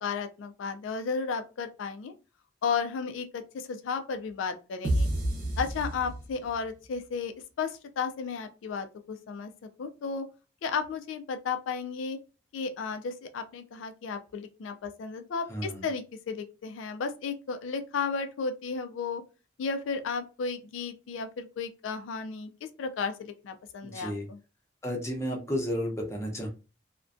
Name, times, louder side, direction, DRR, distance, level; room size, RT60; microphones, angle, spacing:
voice 1, 0.0-2.1 2.6-5.1 5.6-7.3 7.6-9.5 9.8-10.3 10.6-12.2 12.5-19.2 19.6-22.5 22.8-24.4, left 5 dB, 90° left, 7 dB, 0.3 m, -33 dB
sound 1, 4.8-6.7, right 1 dB, 50° right, 0.6 m, -29 dB
voice 2, 15.5-15.8 23.8-24.3 24.8-26.5, equal, 15° left, 0 dB, 0.6 m, -32 dB
2.5 x 2.1 x 2.3 m, 0.31 s
head